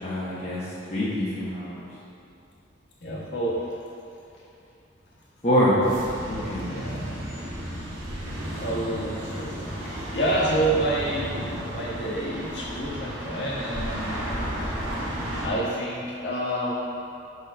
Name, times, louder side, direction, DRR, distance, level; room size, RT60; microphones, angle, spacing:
voice 1, 0.0-1.9 5.4-5.8 6.3-6.7, equal, 35° left, -10 dB, 1.0 m, -25 dB
voice 2, 3.0-3.6 6.4-7.2 8.5-14.2 14.6-15.0 15.4-16.7, right 1 dB, 60° left, -6 dB, 1.3 m, -29 dB
sound 1, 5.8-15.5, equal, 85° right, 1.3 m, -33 dB
4.9 x 4.4 x 5.6 m, 2.6 s
head